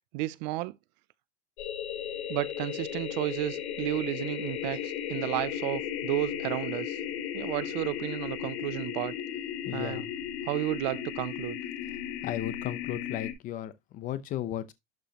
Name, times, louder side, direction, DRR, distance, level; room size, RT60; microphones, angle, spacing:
voice 1, 0.1-0.7 2.3-7.0 7.3-9.1 9.7-10.0 10.5-11.6, right 18 dB, 40° right, 0.5 m, -32 dB
sound 1, 1.6-13.3, left 10 dB, 60° left, 2.2 m, -35 dB
voice 2, 9.6-10.1 12.2-14.7, left 12 dB, 20° left, 0.7 m, -35 dB
12.0 x 4.9 x 2.9 m
supercardioid pair, 175°, 37 cm